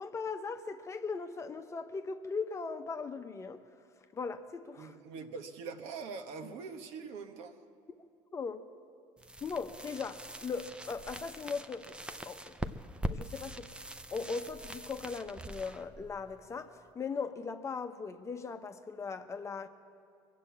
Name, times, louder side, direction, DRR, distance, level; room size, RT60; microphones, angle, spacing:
voice 1, 0.0-3.6 4.1-5.0 8.3-8.7 9.4-12.7 13.0-13.8 14.1-19.7, left 5 dB, 25° left, 0.8 m, -39 dB
voice 2, 4.8-7.6, right 5 dB, 70° right, 1.2 m, -43 dB
sound 1, 9.2-16.9, right 1 dB, 10° right, 0.6 m, -43 dB
22.5 x 7.6 x 8.4 m
supercardioid pair, 100°, 11 cm